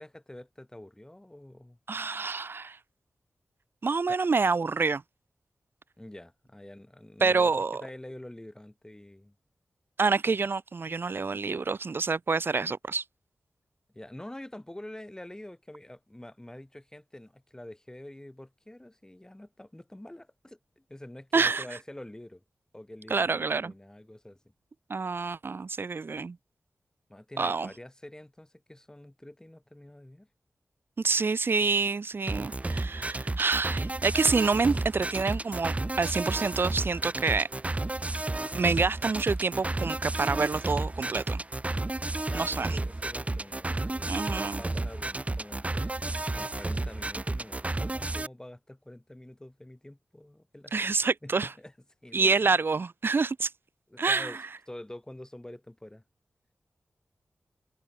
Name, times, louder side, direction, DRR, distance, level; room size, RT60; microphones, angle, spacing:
voice 1, 0.0-1.8 4.1-4.2 6.0-9.3 13.9-22.4 22.7-24.5 27.1-30.3 42.3-51.0 51.2-51.7 52.0-52.5 53.9-54.4 54.7-56.0, left 1 dB, 15° left, 3.0 m, -46 dB
voice 2, 1.9-2.8 3.8-5.0 7.2-7.8 10.0-13.0 21.3-21.6 23.1-23.7 24.9-26.4 27.4-27.7 31.0-37.5 38.5-41.4 42.3-42.8 44.1-44.6 50.7-51.5 52.1-53.5 54.0-54.4, right 4 dB, 55° right, 0.8 m, -27 dB
sound 1, 32.3-48.3, right 2 dB, 30° right, 2.2 m, -32 dB
cardioid pair, 50°, 5 cm